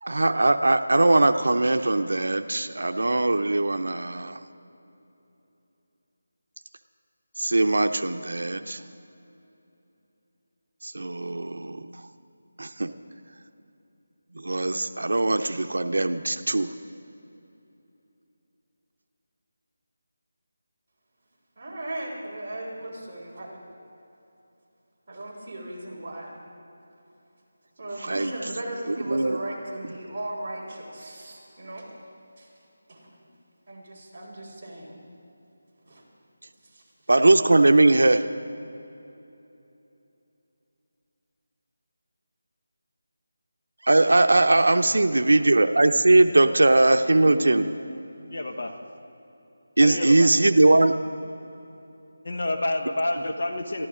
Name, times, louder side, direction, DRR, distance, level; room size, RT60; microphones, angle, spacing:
voice 1, 0.0-4.4 7.4-8.8 10.8-11.9 12.6-12.9 14.4-16.7 28.1-28.3 29.1-29.4 37.1-38.2 43.8-47.6 49.8-50.9, right 2 dB, 85° right, 8 dB, 0.6 m, -20 dB
voice 2, 21.6-23.6 25.1-26.4 27.8-31.9 32.4-32.5 32.9-33.1 33.7-35.0 35.8-36.0 36.6-36.8 47.2-47.6, right 1 dB, 20° right, -9 dB, 3.8 m, -37 dB
voice 3, 48.3-48.8 49.8-50.3 52.2-53.9, left 1 dB, 50° left, 5 dB, 1.0 m, -28 dB
23.0 x 14.0 x 3.8 m, 2.9 s
figure-of-eight pair, 180°, 0 cm